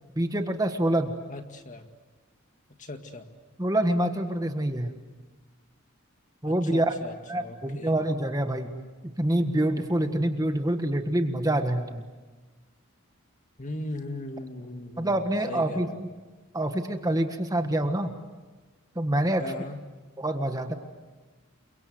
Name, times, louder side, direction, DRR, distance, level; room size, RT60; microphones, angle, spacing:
voice 1, 0.1-1.1 3.6-4.9 6.4-6.9 7.3-12.0 15.0-16.1 16.5-18.1 18.9-19.4 20.2-20.8, right 1 dB, 15° right, 6 dB, 1.6 m, -26 dB
voice 2, 1.3-1.9 2.8-3.3 6.5-7.9 13.6-16.0 19.4-19.8, left 1 dB, 35° left, 6 dB, 2.0 m, -39 dB
29.5 x 24.0 x 7.9 m, 1.3 s
head